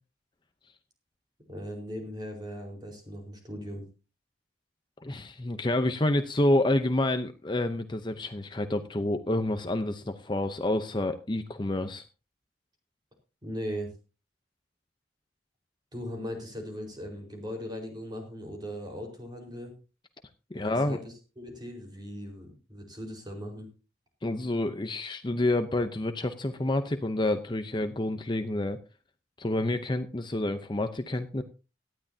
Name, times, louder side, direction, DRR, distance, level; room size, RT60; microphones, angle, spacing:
voice 1, 1.5-3.8 13.4-13.9 15.9-19.7 20.5-23.7, equal, 25° right, 2 dB, 4.6 m, -39 dB
voice 2, 5.0-12.0 20.5-21.0 24.2-28.8 29.4-31.4, left 1 dB, 25° left, 8 dB, 0.8 m, -28 dB
18.0 x 12.5 x 2.8 m, 0.32 s
head